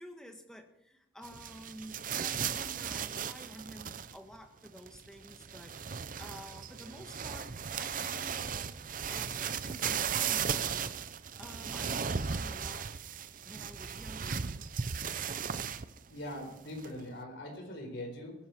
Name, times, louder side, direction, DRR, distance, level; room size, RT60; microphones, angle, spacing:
voice 1, 0.0-8.7 9.1-11.0 11.4-12.9 13.4-14.6, equal, 5° left, 4 dB, 1.6 m, -50 dB
sound 1, 1.2-4.3 4.7-16.0 16.3-16.4 16.8-17.0, right 7 dB, 45° right, 0.6 m, -36 dB
voice 2, 16.1-18.3, left 1 dB, 70° left, 2 dB, 4.5 m, -42 dB
21.0 x 10.0 x 4.6 m, 0.85 s
head